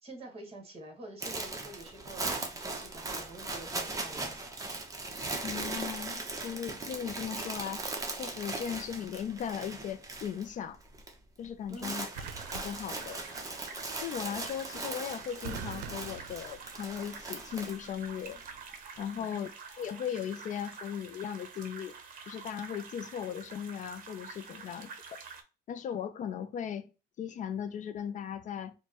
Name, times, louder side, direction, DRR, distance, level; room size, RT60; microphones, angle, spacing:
voice 1, 0.0-4.6 11.7-12.0 19.2-19.4, right 1 dB, 35° right, 1.5 m, -48 dB
sound 1, 1.2-10.5 10.7-11.1 11.4-18.4, right 2 dB, 20° right, 0.8 m, -39 dB
voice 2, 5.4-7.9 8.2-10.8 11.4-12.1 12.5-13.2 14.0-18.4 19.0-21.9 22.3-25.2 25.7-26.9 27.2-28.7, left 8 dB, 50° left, 0.4 m, -37 dB
sound 2, 8.3-8.6 12.1-13.6 15.4-17.1 18.3-18.6, right 6 dB, 85° right, 0.5 m, -45 dB
sound 3, 12.1-25.4, right 5 dB, 55° right, 0.8 m, -48 dB
4.4 x 2.1 x 2.9 m
cardioid pair, 110°, 17 cm